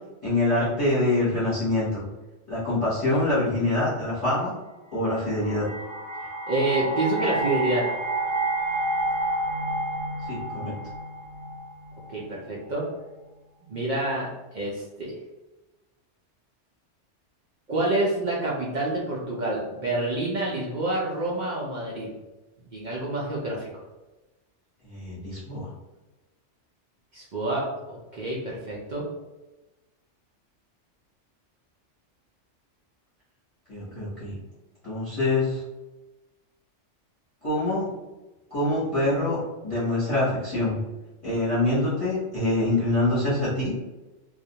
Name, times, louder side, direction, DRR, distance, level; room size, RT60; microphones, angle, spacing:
voice 1, 0.2-2.0 2.5-4.5 4.9-5.7 10.3-10.7 24.8-25.7 33.7-34.3 34.8-35.6 37.4-37.9 38.5-40.8 41.2-43.7, left 2 dB, 30° left, -11 dB, 0.8 m, -25 dB
sound 1, 5.1-12.2, right 2 dB, 85° right, 0.9 m, -30 dB
voice 2, 6.5-7.8 12.1-12.8 13.6-15.1 17.7-22.1 22.7-23.7 27.1-29.0, right 2 dB, 60° right, -4 dB, 0.5 m, -28 dB
2.3 x 2.1 x 2.7 m, 1.1 s
omnidirectional pair, 1.2 m